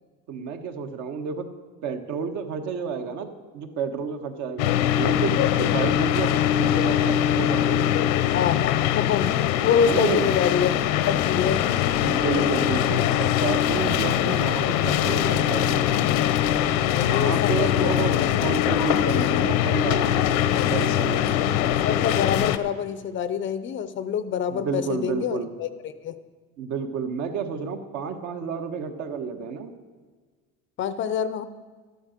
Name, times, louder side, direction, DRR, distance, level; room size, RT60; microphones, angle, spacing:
voice 1, 0.3-1.5 1.8-8.1 9.8-10.3 12.0-15.9 17.0-20.4 20.7-21.2 24.5-25.5 26.6-29.7, right 6 dB, 55° right, 6 dB, 1.4 m, -30 dB
sound 1, 4.6-22.6, left 11 dB, 85° left, 0.9 m, -22 dB
voice 2, 8.3-9.3 9.6-10.7 11.1-11.9 16.9-17.9 21.4-26.2 30.8-31.4, left 8 dB, 35° left, 12 dB, 0.6 m, -26 dB
13.0 x 11.0 x 6.6 m, 1.5 s
cardioid pair, 160°, 35 cm